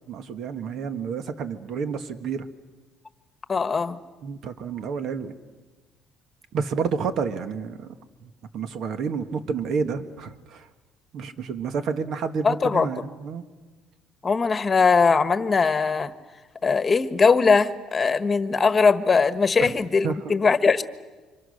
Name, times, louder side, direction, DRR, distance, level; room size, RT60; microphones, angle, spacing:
voice 1, 0.1-2.5 4.2-5.3 6.5-7.9 8.2-10.7 11.1-13.5 19.6-19.7 20.0-20.3, right 5 dB, 60° right, 9 dB, 1.7 m, -30 dB
voice 2, 3.5-4.0 12.4-12.9 14.2-16.1 16.6-20.8, left 5 dB, 25° left, 11 dB, 1.5 m, -20 dB
29.5 x 25.5 x 6.7 m, 1.3 s
cardioid pair, 105°, 0 cm